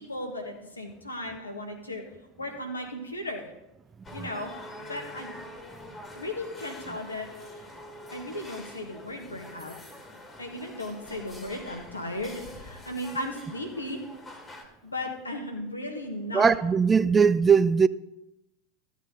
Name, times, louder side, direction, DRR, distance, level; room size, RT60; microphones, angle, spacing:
voice 1, 0.0-2.0 2.4-3.5 4.1-4.5 4.9-5.3 6.1-7.6 8.1-9.7 10.4-14.0 14.8-16.5, left 1 dB, 85° left, 1.6 m, -36 dB
sound 1, 4.0-14.6, left 1 dB, 20° left, 1.9 m, -45 dB
voice 2, 16.3-17.9, right 6 dB, 20° right, 0.3 m, -20 dB
14.0 x 8.2 x 4.0 m
figure-of-eight pair, 80°, 0 cm